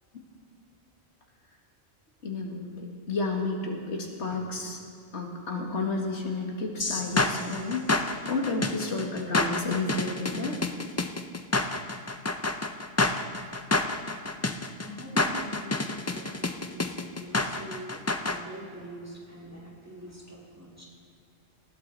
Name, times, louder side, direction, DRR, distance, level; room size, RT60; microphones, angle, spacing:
voice 1, 2.2-4.8 5.1-10.6 14.3-14.4, left 3 dB, 80° left, 0 dB, 2.1 m, -31 dB
sound 1, 6.8-18.4, left 2 dB, 25° left, 0.3 m, -28 dB
voice 2, 13.8-14.5 14.8-20.9, right 1 dB, 15° right, -4 dB, 2.5 m, -44 dB
19.5 x 12.0 x 4.0 m, 2.5 s
omnidirectional pair, 1.2 m